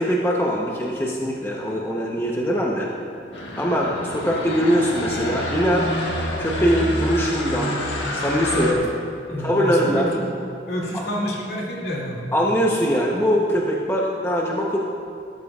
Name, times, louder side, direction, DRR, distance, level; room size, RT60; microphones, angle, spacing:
voice 1, 0.0-2.9 3.6-5.9 6.4-7.8 8.1-8.7 9.4-10.1 10.9-11.0 12.3-14.8, equal, 15° left, -3 dB, 0.8 m, -22 dB
sound 1, 3.3-8.7, left 1 dB, 80° left, 1.6 m, -28 dB
voice 2, 8.5-8.8 9.2-10.2 10.7-12.2, left 1 dB, 65° left, -4 dB, 2.4 m, -27 dB
17.0 x 13.0 x 2.4 m, 2.7 s
head